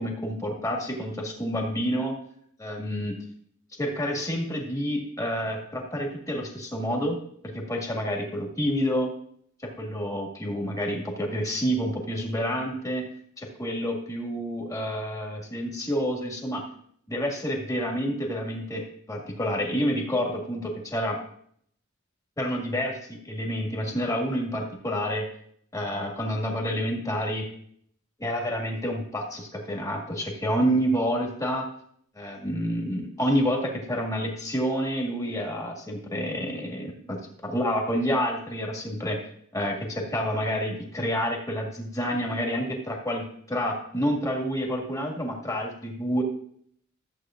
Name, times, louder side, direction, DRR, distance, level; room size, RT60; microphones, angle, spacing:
voice 1, 0.0-2.2 2.6-3.2 3.8-7.2 7.4-9.1 9.6-13.1 13.4-16.6 17.1-21.2 22.4-25.3 25.7-27.5 28.2-31.7 32.2-39.2 39.5-46.2, equal, 15° left, 0 dB, 1.9 m, -28 dB
14.5 x 8.2 x 2.5 m, 0.65 s
head